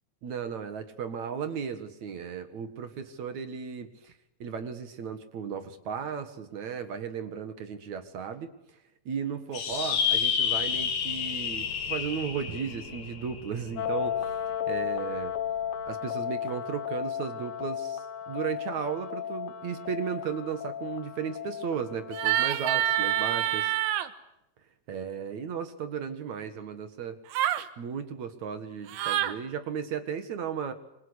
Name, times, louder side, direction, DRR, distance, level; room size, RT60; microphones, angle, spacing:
voice 1, 0.2-4.1 4.4-8.5 9.1-14.3 14.7-15.3 15.9-23.7 24.9-27.2 27.8-30.7, right 7 dB, 50° right, 9 dB, 2.5 m, -35 dB
sound 1, 9.5-14.3, left 7 dB, 90° left, 5.4 m, -30 dB
sound 2, 13.8-23.4, left 9 dB, 60° left, 2.8 m, -35 dB
sound 3, 22.1-24.1 27.3-27.7 28.9-29.4, right 13 dB, 85° right, 3.6 m, -26 dB
28.0 x 25.5 x 8.2 m, 0.85 s
omnidirectional pair, 5.0 m